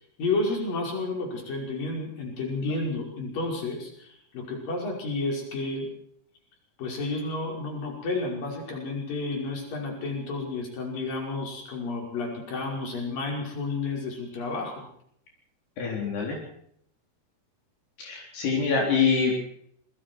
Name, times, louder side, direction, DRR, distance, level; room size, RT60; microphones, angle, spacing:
voice 1, 0.2-5.9 6.8-14.9, left 3 dB, 60° left, 0 dB, 7.2 m, -31 dB
voice 2, 15.8-16.4 18.0-19.4, left 5 dB, 80° left, -1 dB, 6.1 m, -25 dB
27.0 x 22.5 x 4.7 m, 0.69 s
omnidirectional pair, 4.6 m